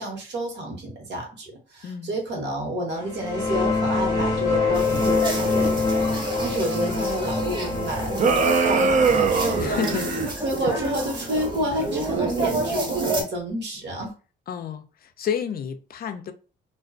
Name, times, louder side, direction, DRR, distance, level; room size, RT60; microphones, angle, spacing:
voice 1, 0.0-9.9 10.4-14.1, right 1 dB, 60° right, 1.0 m, -30 dB
voice 2, 1.8-2.2 6.8-7.1 9.6-10.1 14.5-16.3, left 8 dB, 50° left, 0.4 m, -31 dB
sound 1, 3.0-12.3, left 4 dB, 20° left, 0.8 m, -26 dB
sound 2, 4.7-13.2, right 2 dB, 25° right, 0.7 m, -29 dB
sound 3, 8.2-10.3, right 4 dB, 40° right, 0.4 m, -21 dB
2.3 x 2.2 x 2.4 m
cardioid pair, 90°, 20 cm